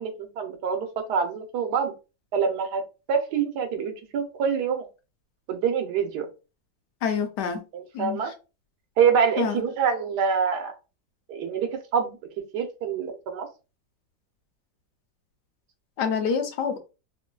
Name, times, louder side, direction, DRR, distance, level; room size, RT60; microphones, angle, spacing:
voice 1, 0.0-1.9 2.3-2.8 3.1-4.9 5.5-6.3 7.7-8.3 9.0-10.7 11.3-12.2 12.5-13.5, right 6 dB, 65° right, 5 dB, 1.2 m, -26 dB
voice 2, 7.0-7.6 7.9-8.2 9.4-9.5 16.0-16.8, left 6 dB, 70° left, 6 dB, 1.2 m, -26 dB
3.8 x 2.6 x 2.2 m, 0.30 s
omnidirectional pair, 2.0 m